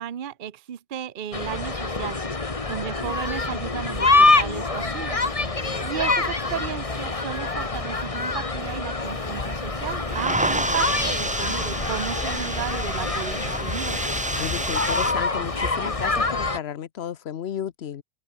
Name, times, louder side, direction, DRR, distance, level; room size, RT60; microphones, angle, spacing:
voice 1, 0.0-14.0, right 9 dB, 50° right, 0.9 m, -34 dB
sound 1, 1.3-16.6, left 3 dB, 30° left, 1.6 m, -26 dB
sound 2, 3.0-3.7 3.9-16.5, left 1 dB, 10° left, 3.2 m, -47 dB
voice 2, 5.4-6.0 14.4-18.0, left 9 dB, 65° left, 1.0 m, -33 dB
sound 3, 9.0-15.1, right 1 dB, 10° right, 0.7 m, -29 dB
omnidirectional pair, 1.2 m